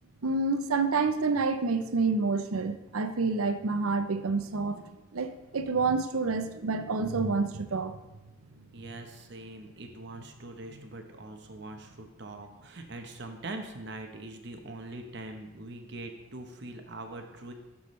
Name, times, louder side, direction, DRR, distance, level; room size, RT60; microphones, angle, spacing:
voice 1, 0.2-8.0 10.7-10.8, right 4 dB, 85° right, 10 dB, 0.7 m, -28 dB
voice 2, 8.7-17.5, right 2 dB, 55° right, 5 dB, 0.9 m, -42 dB
12.0 x 7.1 x 3.2 m, 1.0 s
head